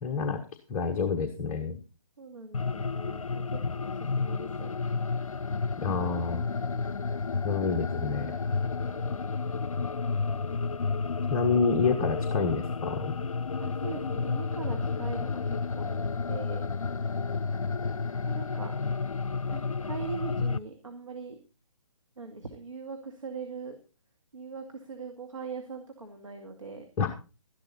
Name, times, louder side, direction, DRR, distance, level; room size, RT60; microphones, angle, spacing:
voice 1, 0.0-0.4 0.7-1.8 5.8-6.4 7.4-8.4 11.3-13.1 27.0-27.1, left 4 dB, 20° left, 3 dB, 1.1 m, -28 dB
voice 2, 2.2-4.7 8.8-9.3 13.6-16.0 16.3-16.6 18.2-18.7 19.5-21.4 22.2-23.8 24.3-27.1, right 5 dB, 70° right, 3 dB, 2.3 m, -41 dB
sound 1, 2.5-20.6, left 4 dB, 80° left, 0.5 m, -31 dB
13.0 x 11.5 x 4.3 m, 0.33 s
figure-of-eight pair, 140°, 17 cm